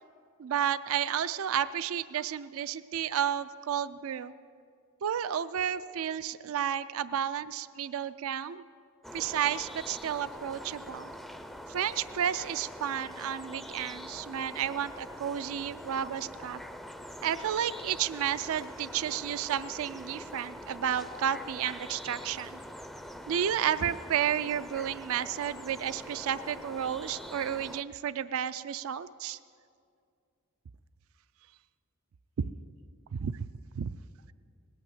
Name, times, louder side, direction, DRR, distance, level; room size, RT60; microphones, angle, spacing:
voice 1, 0.4-4.3 5.0-8.6 9.1-11.1 11.7-16.6 17.2-22.6 23.3-29.4 33.2-33.3 33.8-33.9, right 9 dB, 65° right, 15 dB, 0.4 m, -32 dB
sound 1, 9.0-27.8, equal, ahead, 0.4 m, -44 dB
18.5 x 8.9 x 7.9 m, 2.3 s
head